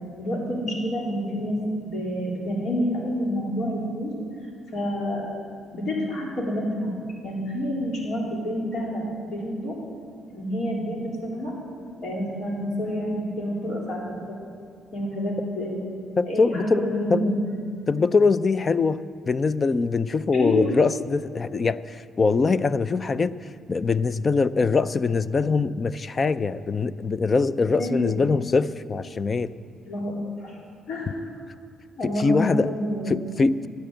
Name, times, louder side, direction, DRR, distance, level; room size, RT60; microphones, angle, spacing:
voice 1, 0.1-4.1 4.7-5.2 5.7-6.9 7.2-9.8 10.3-11.5 12.0-14.0 14.3-14.4 14.9-15.8 16.2-17.4 20.3-20.7 27.8-28.2 29.8-30.6 30.9-31.2 32.0-33.1, equal, 65° left, -3 dB, 4.0 m, -28 dB
voice 2, 16.2-16.8 17.1-17.3 17.9-19.0 19.3-23.3 23.7-29.5 32.0-32.7 33.1-33.7, left 4 dB, 35° left, 16 dB, 0.4 m, -23 dB
14.0 x 9.5 x 7.9 m, 2.2 s
cardioid pair, 90°, 0 cm